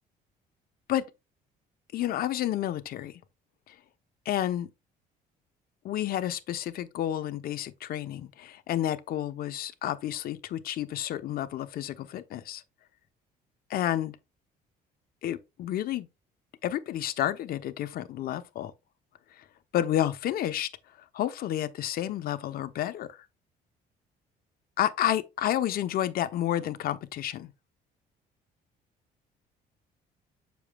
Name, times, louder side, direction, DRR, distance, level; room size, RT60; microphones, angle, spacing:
voice 1, 1.9-3.1 3.7-3.8 4.3-4.7 5.8-12.6 13.7-14.2 15.2-16.1 16.6-18.7 19.4-19.5 19.7-20.7 21.1-23.1 24.8-27.5, left 12 dB, 60° left, 0.7 m, -30 dB
7.1 x 5.9 x 2.2 m
cardioid pair, 110°, 17 cm